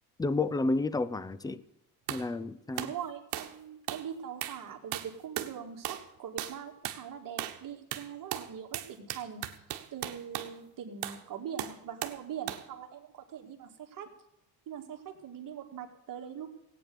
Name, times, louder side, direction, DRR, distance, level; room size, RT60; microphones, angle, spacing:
voice 1, 0.2-1.6 2.1-2.9, left 3 dB, 10° left, 0.5 m, -30 dB
sound 1, 2.1-2.3 2.8-3.0 3.3-3.6 3.9-4.1 4.4-4.6 4.9-5.6 5.8-6.1 6.4-6.6 6.8-7.0 7.4-7.6 7.9-10.5 11.0-11.2 11.6-12.2 12.5-12.7, right 13 dB, 85° right, 1.3 m, -37 dB
voice 2, 2.8-9.6 9.9-14.1 14.7-16.5, right 8 dB, 55° right, 2.2 m, -42 dB
17.5 x 9.1 x 6.9 m
cardioid pair, 125°, 40 cm